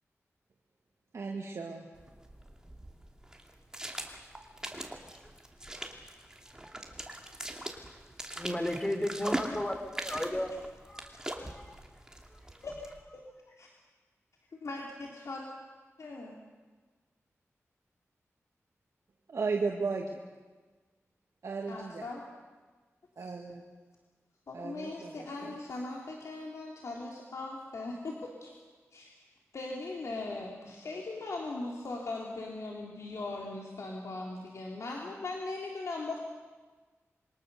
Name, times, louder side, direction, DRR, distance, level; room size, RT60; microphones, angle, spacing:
voice 1, 1.1-1.9 19.3-20.2 21.4-22.1 23.2-23.6 24.5-25.6, right 4 dB, 70° right, 1 dB, 2.1 m, -35 dB
sound 1, 1.9-13.0, right 1 dB, 15° right, 2.6 m, -41 dB
voice 2, 8.4-10.5, left 1 dB, 15° left, 6 dB, 3.4 m, -33 dB
voice 3, 12.6-13.7 14.5-15.5 16.0-16.4 21.7-22.2 23.2-23.3 24.5-28.6 28.9-29.1 29.5-36.2, left 2 dB, 75° left, -1 dB, 3.2 m, -39 dB
27.0 x 23.5 x 6.9 m, 1.4 s
wide cardioid pair, 110°, 5 cm